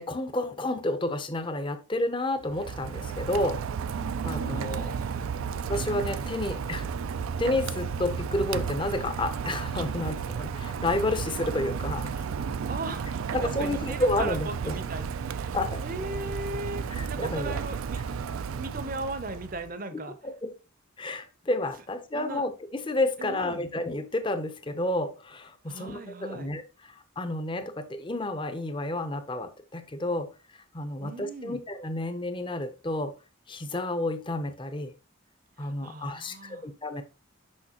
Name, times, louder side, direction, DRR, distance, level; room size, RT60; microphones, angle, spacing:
voice 1, 0.0-3.6 4.2-4.9 5.7-6.9 7.4-12.3 13.3-14.7 15.5-15.8 16.9-17.6 19.9-20.5 21.0-30.3 30.7-33.1 33.5-34.9 35.6-37.0, left 1 dB, 25° left, 10 dB, 0.6 m, -30 dB
Rain, 2.4-19.7, right 6 dB, 85° right, 0.4 m, -33 dB
voice 2, 4.2-5.3 12.7-15.6 15.8-18.0 18.4-20.2 22.1-22.4 23.2-23.6 25.7-26.5 31.0-31.6 35.6-36.7, right 2 dB, 40° right, 11 dB, 0.6 m, -38 dB
6.4 x 5.3 x 2.8 m, 0.31 s
head